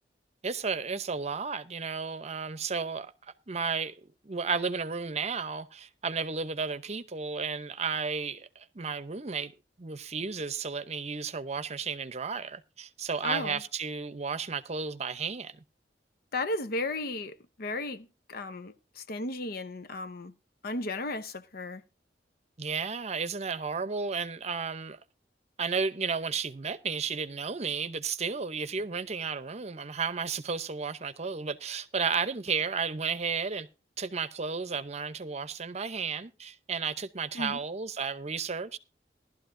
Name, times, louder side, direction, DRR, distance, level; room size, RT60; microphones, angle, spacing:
voice 1, 0.4-9.5 9.8-15.6 22.6-25.0 25.6-33.7 34.0-38.8, right 5 dB, 40° right, 0.8 m, -33 dB
voice 2, 13.2-13.6 16.3-20.3 20.6-21.8 37.3-37.6, left 2 dB, 60° left, 0.9 m, -35 dB
17.0 x 12.0 x 2.6 m
head